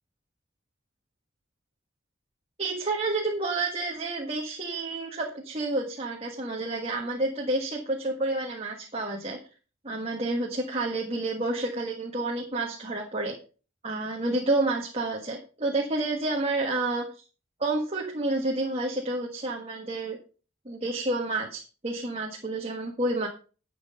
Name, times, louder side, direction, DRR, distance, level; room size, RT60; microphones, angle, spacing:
voice 1, 2.6-9.4 9.8-13.3 13.8-17.2 17.6-20.2 20.6-23.3, right 2 dB, 30° right, 0 dB, 1.6 m, -29 dB
11.5 x 6.2 x 5.4 m, 0.36 s
head